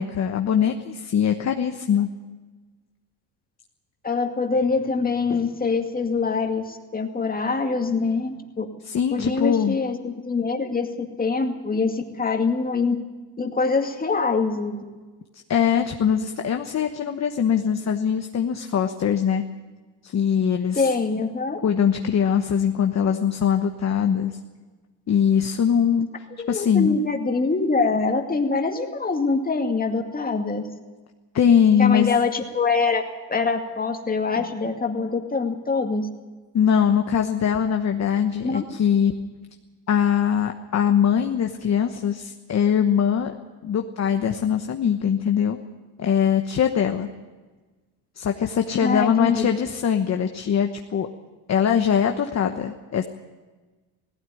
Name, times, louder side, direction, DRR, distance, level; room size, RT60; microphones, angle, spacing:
voice 1, 0.0-2.1 8.8-9.8 15.5-19.4 20.0-20.9 21.6-24.3 25.1-27.0 31.3-32.2 36.5-39.1 39.9-43.3 43.6-45.6 46.0-47.1 48.2-51.1 51.5-53.0, left 8 dB, 35° left, 5 dB, 1.2 m, -22 dB
voice 2, 4.0-8.7 9.1-13.0 13.4-14.8 20.7-21.6 26.4-30.7 31.8-33.0 33.3-36.1 38.4-38.6 48.8-49.5, left 4 dB, 20° left, 3 dB, 2.3 m, -24 dB
17.5 x 16.5 x 9.4 m, 1.3 s
cardioid pair, 120°, 48 cm